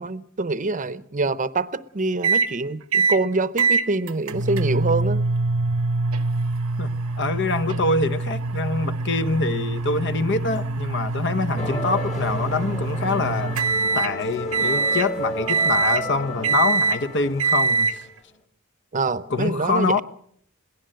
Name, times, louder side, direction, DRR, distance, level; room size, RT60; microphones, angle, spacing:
voice 1, 0.0-5.2 18.9-20.0, right 3 dB, 35° right, 0.8 m, -25 dB
sound 1, 2.2-2.5 2.9-3.2 3.6-14.1 14.5-15.1 15.5-16.0 16.4-17.0 17.4-17.9, right 3 dB, 85° right, 1.0 m, -24 dB
voice 2, 6.8-13.6 13.9-18.0 19.3-20.0, left 3 dB, 55° left, 0.9 m, -25 dB
sound 2, 11.6-18.1, left 1 dB, 35° left, 1.8 m, -33 dB
22.0 x 17.0 x 7.7 m
head